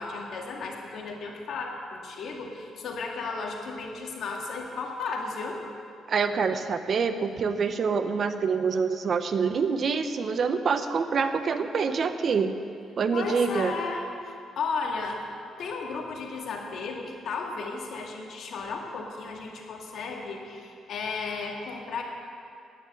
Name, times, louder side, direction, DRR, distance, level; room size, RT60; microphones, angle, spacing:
voice 1, 0.0-5.6 13.1-14.1 14.6-15.2 15.6-22.0, left 4 dB, 65° left, 1 dB, 2.0 m, -34 dB
voice 2, 6.1-12.5 13.0-13.7, right 5 dB, 50° right, 9 dB, 0.8 m, -26 dB
10.0 x 9.4 x 7.7 m, 2.4 s
cardioid pair, 90°, 0 cm